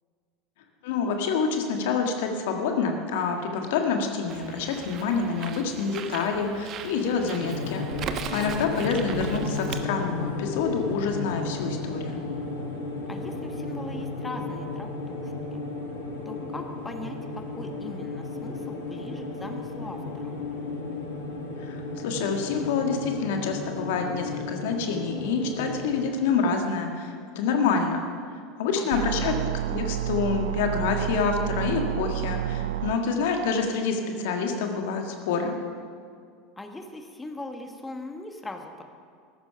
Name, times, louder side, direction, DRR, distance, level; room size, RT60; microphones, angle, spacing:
voice 1, 0.8-12.2 21.6-28.0 28.6-29.3 29.7-35.5, left 5 dB, 65° left, 3 dB, 1.7 m, -27 dB
Bird, 4.3-9.8, right 8 dB, 40° right, 1.0 m, -38 dB
sound 1, 7.4-26.0, left 3 dB, 90° left, 3.2 m, -34 dB
voice 2, 8.4-8.7 13.1-15.6 16.2-20.4 28.8-29.5 36.6-38.8, left 2 dB, 15° left, 4 dB, 1.4 m, -40 dB
sound 2, 28.9-32.9, right 13 dB, 70° right, 0.5 m, -29 dB
14.5 x 12.0 x 5.7 m, 2.2 s
figure-of-eight pair, 80°, 0 cm